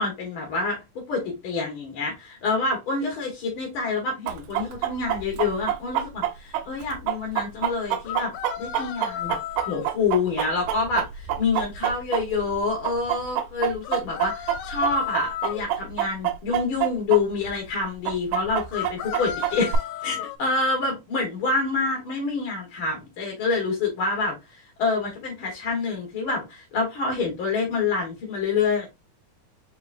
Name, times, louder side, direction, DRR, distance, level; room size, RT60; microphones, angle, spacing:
voice 1, 0.0-9.4 9.7-28.9, left 4 dB, 60° left, 1.5 m, -27 dB
Chicken rooster, 4.3-12.6 12.8-17.2 17.5-17.6 18.0-19.8, right 11 dB, 85° right, 2.2 m, -26 dB
sound 1, 8.1-9.9 13.8-15.7 18.7-20.4, left 10 dB, 75° left, 2.0 m, -33 dB
4.8 x 3.7 x 2.4 m
omnidirectional pair, 3.7 m